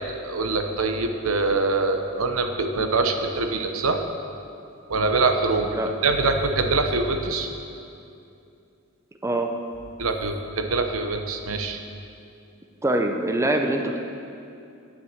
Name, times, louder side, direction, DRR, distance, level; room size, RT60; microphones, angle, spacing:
voice 1, 0.1-4.0 4.9-7.5 10.0-11.8, right 3 dB, 75° right, 6 dB, 0.9 m, -24 dB
voice 2, 12.8-14.0, right 1 dB, 15° right, 4 dB, 0.6 m, -24 dB
9.7 x 8.4 x 7.3 m, 2.6 s
head